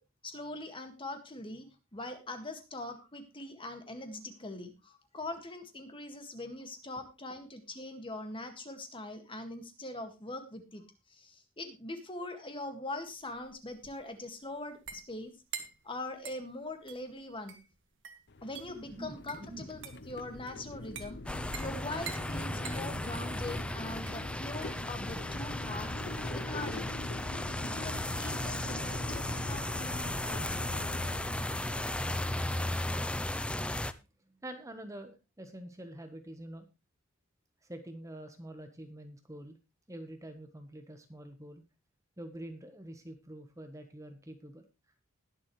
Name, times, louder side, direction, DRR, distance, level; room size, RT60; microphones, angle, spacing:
voice 1, 0.2-1.7 1.9-10.8 11.1-15.3 15.8-17.6 18.4-19.8 20.1-21.2 21.6-25.9 26.3-26.9 27.6-30.6, left 2 dB, 25° left, 6 dB, 1.9 m, -42 dB
sound 1, 13.0-27.0, right 7 dB, 60° right, 1.8 m, -49 dB
sound 2, 18.3-33.3, left 2 dB, 55° left, 0.7 m, -44 dB
voice 2, 18.9-19.7 34.0-36.7 37.6-39.6 39.9-41.6 42.2-44.7, right 1 dB, 15° right, 6 dB, 1.2 m, -46 dB
sound 3, 21.3-33.9, left 1 dB, 5° left, 0.5 m, -35 dB
20.5 x 7.4 x 3.2 m, 0.27 s
head